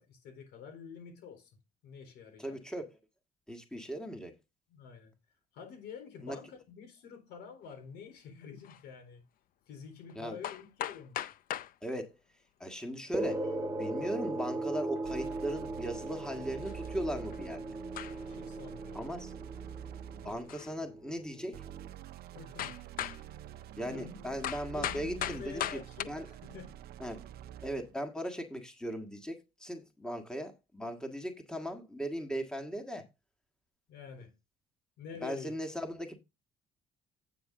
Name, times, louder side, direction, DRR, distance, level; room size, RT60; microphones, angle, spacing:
voice 1, 0.0-1.5 1.8-2.6 4.7-5.1 5.5-9.2 9.7-11.2 18.3-19.0 22.3-22.8 23.9-24.3 24.7-26.8 33.9-34.3 35.0-35.5, left 6 dB, 80° left, 3.9 m, -48 dB
voice 2, 2.4-2.9 3.5-4.3 6.2-6.4 10.1-10.4 11.8-12.2 12.6-17.6 18.9-19.3 20.2-21.6 23.8-25.8 26.1-26.3 27.0-27.3 27.6-33.1 35.2-36.2, equal, 5° left, 1.7 m, -38 dB
sound 1, 8.6-8.8 10.1-10.2 10.4-11.7 13.0-13.5 15.0-15.1 15.3-15.4 16.6-16.9 17.3-17.4 17.9-18.4 20.5-20.8 21.4-21.5 22.6-23.2 24.4-26.0, left 11 dB, 60° left, 0.5 m, -38 dB
sound 2, 13.1-21.9, right 2 dB, 20° right, 1.1 m, -39 dB
sound 3, 15.0-20.6 21.5-27.9, right 11 dB, 70° right, 0.7 m, -47 dB
9.3 x 6.5 x 3.8 m
cardioid pair, 110°, 17 cm